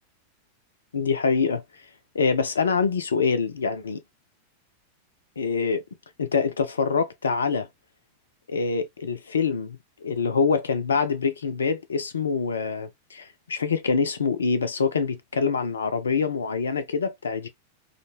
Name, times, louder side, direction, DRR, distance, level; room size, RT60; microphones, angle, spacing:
voice 1, 0.9-1.6 2.1-4.0 5.4-5.8 6.2-7.7 8.5-17.5, left 5 dB, 70° left, 0.4 m, -25 dB
2.5 x 2.1 x 3.0 m
figure-of-eight pair, 90°, 0 cm